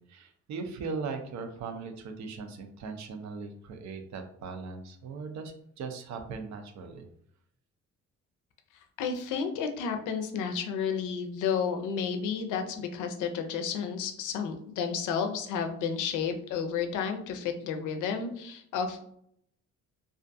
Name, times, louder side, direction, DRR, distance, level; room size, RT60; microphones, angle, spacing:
voice 1, 0.0-7.1, right 4 dB, 65° right, 6 dB, 0.5 m, -39 dB
voice 2, 9.0-19.0, left 6 dB, 80° left, 6 dB, 0.5 m, -31 dB
2.4 x 2.2 x 2.5 m, 0.68 s
cardioid pair, 90°, 30 cm